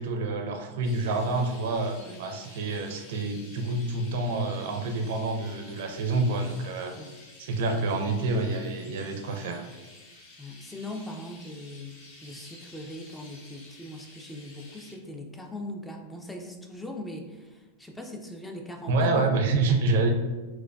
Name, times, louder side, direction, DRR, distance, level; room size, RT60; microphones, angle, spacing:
voice 1, 0.0-6.9 7.4-9.6 18.9-20.1, right 3 dB, 55° right, 4 dB, 0.4 m, -27 dB
Chirp tweet, 0.8-14.9, left 2 dB, 45° left, 0.8 m, -51 dB
voice 2, 10.4-19.3, left 1 dB, 10° left, 2 dB, 0.4 m, -40 dB
4.4 x 2.2 x 2.3 m, 1.2 s
figure-of-eight pair, 90°, 0 cm